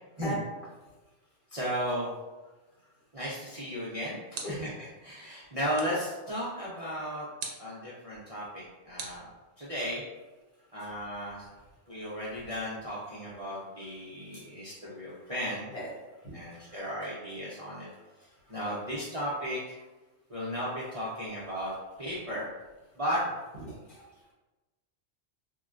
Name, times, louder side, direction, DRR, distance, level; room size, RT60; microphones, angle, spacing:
voice 1, 1.5-2.1 3.1-4.7 5.0-7.3 7.6-9.3 9.6-10.0 10.7-11.5 11.9-15.7 16.3-17.9 18.2-19.8 20.3-22.5 23.0-23.2, equal, 45° right, -9 dB, 0.5 m, -35 dB
sound 1, 4.3-4.8 5.7-6.1 7.4-7.8 9.0-9.9, right 4 dB, 90° right, 1.0 m, -42 dB
voice 2, 10.6-10.9 11.9-12.0 14.2-14.5 15.2-15.3 15.7-16.8 18.0-18.8 23.6-24.3, right 1 dB, 50° left, -6 dB, 0.8 m, -42 dB
3.7 x 2.1 x 2.4 m, 1.1 s
omnidirectional pair, 1.3 m